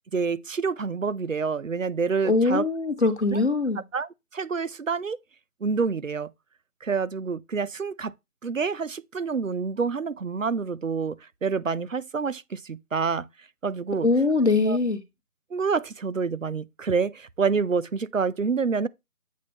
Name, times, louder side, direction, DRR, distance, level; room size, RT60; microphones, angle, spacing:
voice 1, 0.1-2.7 3.3-3.4 3.9-5.2 5.6-6.3 6.8-8.1 8.4-13.3 13.6-14.1 14.7-14.8 15.5-18.9, right 5 dB, 60° right, 0.6 m, -27 dB
voice 2, 2.2-3.8 14.0-15.0, left 3 dB, 50° left, 1.2 m, -22 dB
8.2 x 2.9 x 4.2 m
figure-of-eight pair, 175°, 45 cm